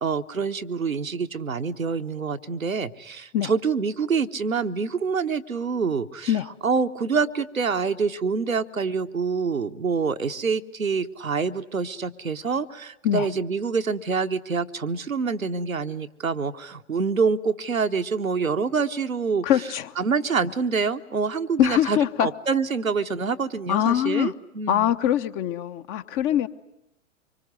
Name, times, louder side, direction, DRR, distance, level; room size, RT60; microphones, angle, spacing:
voice 1, 0.0-6.4 6.6-19.4 20.0-24.9, right 5 dB, 85° right, 7 dB, 1.0 m, -26 dB
voice 2, 19.4-19.9 21.6-22.3 23.7-24.3 24.7-26.5, left 11 dB, 30° left, 12 dB, 1.0 m, -23 dB
25.5 x 24.0 x 9.5 m, 0.83 s
figure-of-eight pair, 100°, 40 cm